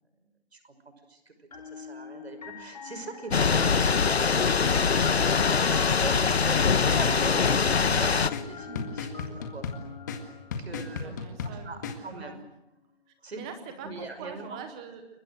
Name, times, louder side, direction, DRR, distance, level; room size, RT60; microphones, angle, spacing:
voice 1, 1.1-9.6 10.6-11.1 11.4-12.4 13.2-13.4 13.8-14.6, right 3 dB, 90° right, 9 dB, 5.9 m, -41 dB
sound 1, 1.5-11.3, left 6 dB, 40° left, 3.1 m, -43 dB
Thunder / Rain, 3.3-8.3, left 5 dB, 80° left, 1.5 m, -23 dB
sound 2, 5.9-12.0, left 4 dB, 20° left, 1.8 m, -36 dB
voice 2, 10.6-12.4 13.3-15.2, right 6 dB, 5° right, 7 dB, 0.8 m, -43 dB
29.0 x 23.0 x 6.4 m, 0.92 s
hypercardioid pair, 170°, 31 cm